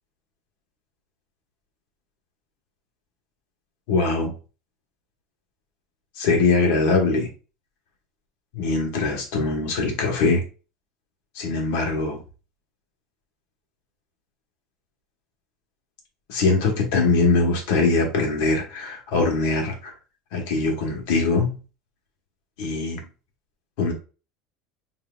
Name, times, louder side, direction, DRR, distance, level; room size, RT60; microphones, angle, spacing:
voice 1, 3.9-4.3 6.2-7.3 8.5-10.4 11.3-12.2 16.3-19.9 20.3-21.5 22.6-23.0 23.8-23.9, left 3 dB, 70° left, 1.3 m, -22 dB
5.6 x 2.8 x 2.3 m
cardioid pair, 155°, 0 cm